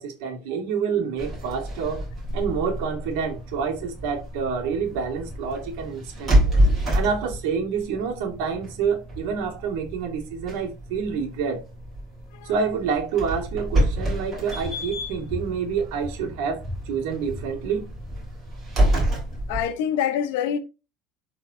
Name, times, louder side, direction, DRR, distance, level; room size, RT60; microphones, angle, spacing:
voice 1, 0.0-2.0 2.3-6.5 6.9-11.6 12.4-17.9, right 6 dB, 70° right, 2.2 m, -28 dB
sound 1, 1.2-19.6, right 1 dB, 20° right, 3.5 m, -28 dB
voice 2, 19.5-20.6, left 9 dB, 80° left, 1.0 m, -25 dB
11.5 x 4.1 x 2.8 m
cardioid pair, 175°, 0 cm